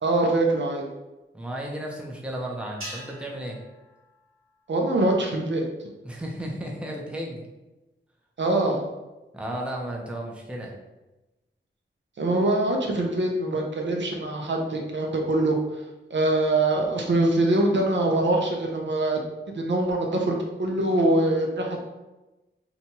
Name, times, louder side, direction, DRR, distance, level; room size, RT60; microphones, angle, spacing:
voice 1, 0.0-0.9 4.7-5.6 8.4-8.8 12.2-15.8 16.1-19.2 19.5-21.8, right 2 dB, 65° right, 1 dB, 0.5 m, -23 dB
voice 2, 1.3-3.6 6.0-7.4 9.3-10.8, right 1 dB, 5° right, -1 dB, 0.5 m, -34 dB
sound 1, 2.8-5.2, right 1 dB, 85° right, 0.9 m, -44 dB
2.7 x 2.2 x 2.8 m, 1.1 s
wide cardioid pair, 55°, 21 cm